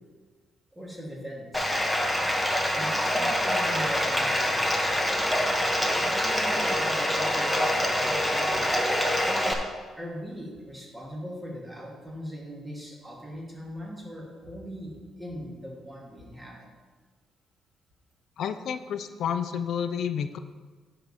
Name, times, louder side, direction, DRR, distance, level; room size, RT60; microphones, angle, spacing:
voice 1, 0.7-1.8 2.7-5.6 6.0-8.9 9.9-16.7, equal, 15° right, -3 dB, 2.7 m, -40 dB
Bathtub (filling or washing), 1.5-9.5, equal, 5° left, 1.3 m, -25 dB
voice 2, 18.4-20.4, left 8 dB, 70° left, 10 dB, 0.5 m, -30 dB
10.0 x 5.1 x 5.8 m, 1.4 s
cardioid pair, 90°, 0 cm